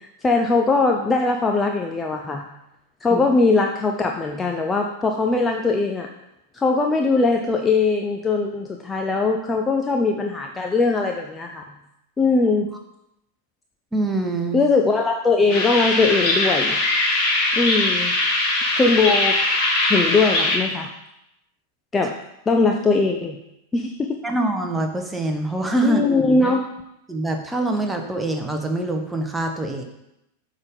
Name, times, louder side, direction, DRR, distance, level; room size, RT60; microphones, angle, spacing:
voice 1, 0.2-2.5 3.0-6.1 6.5-11.6 12.2-12.7 14.5-16.8 17.6-18.1 18.8-19.4 19.8-20.9 21.9-22.1 22.5-23.4 23.7-24.2 25.8-26.7, left 3 dB, 15° left, 2 dB, 0.5 m, -20 dB
voice 2, 13.9-14.6 24.2-26.1 27.1-29.8, right 1 dB, 10° right, 3 dB, 1.0 m, -24 dB
sound 1, 15.5-20.6, left 2 dB, 35° left, 2.1 m, -21 dB
7.9 x 3.8 x 5.3 m, 0.85 s
figure-of-eight pair, 90°, 0 cm